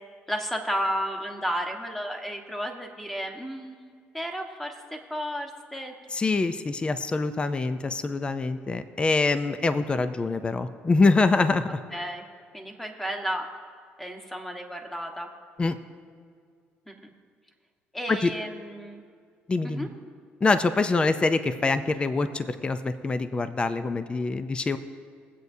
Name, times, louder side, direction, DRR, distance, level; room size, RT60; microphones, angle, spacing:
voice 1, 0.3-5.9 11.9-12.2 12.5-13.5 14.0-15.3 16.9-17.1 17.9-19.0 19.6-19.9, equal, 5° left, 3 dB, 1.3 m, -33 dB
voice 2, 6.1-11.8 15.6-15.8 18.1-18.3 19.5-19.9 20.4-24.8, left 3 dB, 25° left, 11 dB, 0.5 m, -25 dB
21.0 x 7.9 x 2.7 m, 2.1 s
cardioid pair, 95°, 4 cm